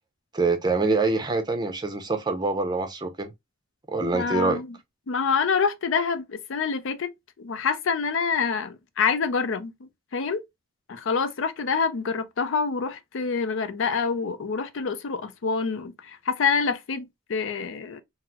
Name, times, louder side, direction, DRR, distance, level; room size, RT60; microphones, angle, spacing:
voice 1, 0.3-3.3 3.9-4.6, right 3 dB, 20° right, 0.5 m, -25 dB
voice 2, 4.0-4.7 5.1-7.1 7.4-10.4 10.9-18.0, left 5 dB, 65° left, 0.5 m, -26 dB
3.9 x 2.0 x 2.8 m
head